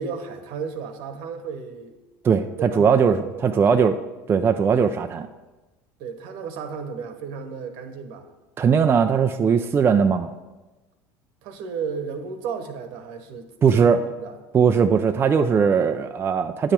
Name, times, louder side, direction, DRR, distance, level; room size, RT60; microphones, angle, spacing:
voice 1, 0.0-2.0 2.6-3.9 6.0-8.3 11.4-14.4, right 6 dB, 70° right, 7 dB, 1.1 m, -34 dB
voice 2, 2.2-4.0 4.3-5.3 8.6-10.3 13.6-14.0 14.5-16.7, right 6 dB, 25° right, 6 dB, 0.4 m, -19 dB
9.5 x 6.9 x 4.4 m, 1.1 s
supercardioid pair, 110°, 9 cm